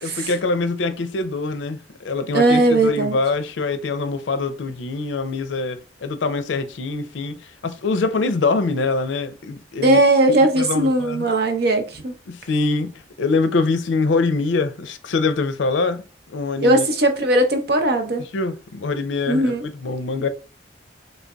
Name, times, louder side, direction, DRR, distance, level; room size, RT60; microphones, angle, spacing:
voice 1, 0.0-10.0 10.6-11.3 12.3-16.9 18.3-20.3, left 3 dB, 85° left, 0.5 m, -24 dB
voice 2, 2.3-3.1 9.8-12.1 16.6-18.2 19.3-19.7, right 2 dB, 60° right, 0.7 m, -18 dB
3.8 x 3.3 x 2.2 m
head